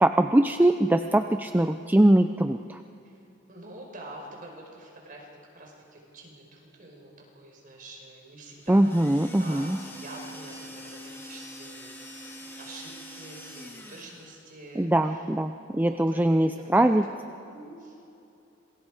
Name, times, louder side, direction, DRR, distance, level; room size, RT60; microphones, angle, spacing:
voice 1, 0.0-2.8 8.7-9.8 14.8-17.1, right 1 dB, 10° right, 8 dB, 0.4 m, -22 dB
voice 2, 3.0-5.3 5.5-12.1 12.4-15.4 15.7-16.8 17.2-18.0, right 1 dB, 40° right, -1 dB, 4.8 m, -46 dB
sound 1, 8.6-14.5, equal, 10° left, 1.8 m, -44 dB
27.0 x 21.0 x 4.9 m, 2.8 s
head